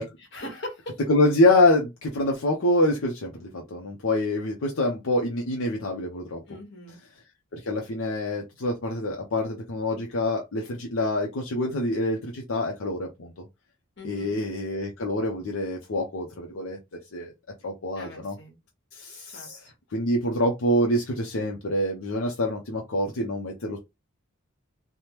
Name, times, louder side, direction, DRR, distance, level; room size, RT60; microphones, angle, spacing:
voice 1, 0.0-1.0 6.5-7.0 14.0-14.4 18.0-18.5 19.3-19.7, left 1 dB, 55° left, 1.3 m, -41 dB
voice 2, 1.1-6.4 7.5-13.3 14.0-16.8 17.1-17.3 17.6-18.4 18.9-19.6 19.9-23.8, left 1 dB, 75° left, 0.7 m, -26 dB
3.4 x 2.1 x 2.9 m
head